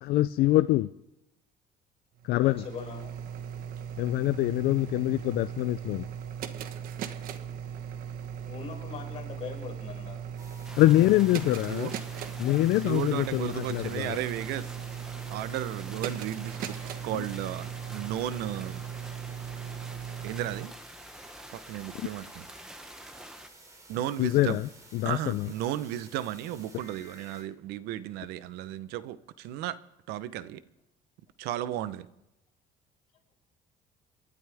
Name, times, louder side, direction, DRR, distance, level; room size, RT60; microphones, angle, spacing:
voice 1, 0.0-0.9 2.2-2.6 4.0-6.0 10.8-11.9 12.4-14.2 24.2-25.5, left 16 dB, 70° left, 0.5 m, -25 dB
sound 1, 2.2-20.7, right 8 dB, 65° right, 1.3 m, -38 dB
voice 2, 2.4-3.1 8.4-10.4 12.4-12.7 14.4-14.5, left 6 dB, 40° left, 5.7 m, -42 dB
sound 2, 10.4-27.4, right 2 dB, 20° right, 3.5 m, -53 dB
sound 3, 10.6-23.5, equal, 5° right, 1.0 m, -47 dB
voice 3, 11.4-11.9 12.8-14.7 15.3-16.8 17.0-18.8 20.2-20.7 21.5-22.5 23.9-24.6 25.0-29.8 30.1-30.6 31.4-32.1, right 12 dB, 90° right, 0.8 m, -34 dB
27.5 x 12.5 x 3.5 m
cardioid pair, 145°, 16 cm